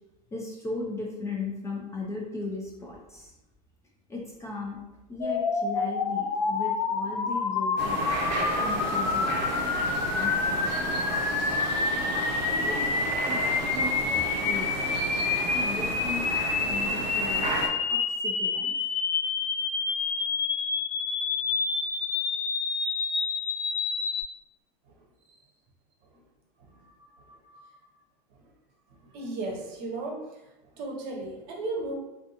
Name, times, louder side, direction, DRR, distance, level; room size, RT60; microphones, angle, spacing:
voice 1, 0.3-3.3 4.1-4.8 5.1-8.1 8.6-9.5 10.0-11.2 12.1-13.0 13.3-14.9 15.5-16.4 16.7-18.9, left 3 dB, 15° left, -3 dB, 0.4 m, -37 dB
sound 1, 5.2-24.2, left 5 dB, 90° left, 0.5 m, -28 dB
sound 2, 7.8-17.7, right 3 dB, 85° right, 0.6 m, -32 dB
voice 2, 27.3-27.6 29.0-30.2 30.7-31.9, right 2 dB, 50° right, 0 dB, 0.8 m, -35 dB
2.5 x 2.2 x 2.7 m, 0.96 s
supercardioid pair, 125°, 21 cm